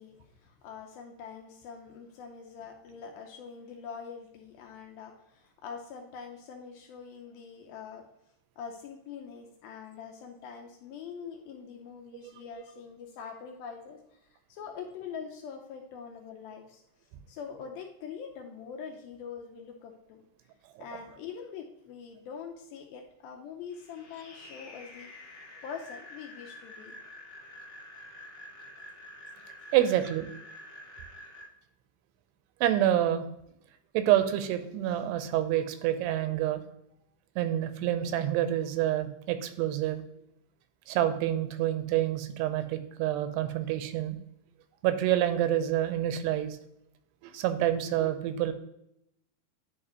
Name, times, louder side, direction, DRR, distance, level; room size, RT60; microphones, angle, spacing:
voice 1, 0.0-8.1 8.6-16.8 17.3-20.2 20.8-25.1 25.6-27.0 30.0-30.1, left 6 dB, 80° left, 2 dB, 2.2 m, -44 dB
sound 1, 23.7-31.4, left 1 dB, 35° left, 2.7 m, -48 dB
voice 2, 29.7-30.3 32.6-33.3 33.9-36.6 37.4-40.0 40.9-44.2 44.8-46.6 47.2-48.5, right 12 dB, 85° right, 10 dB, 2.7 m, -27 dB
10.0 x 4.6 x 2.8 m, 0.80 s
omnidirectional pair, 4.7 m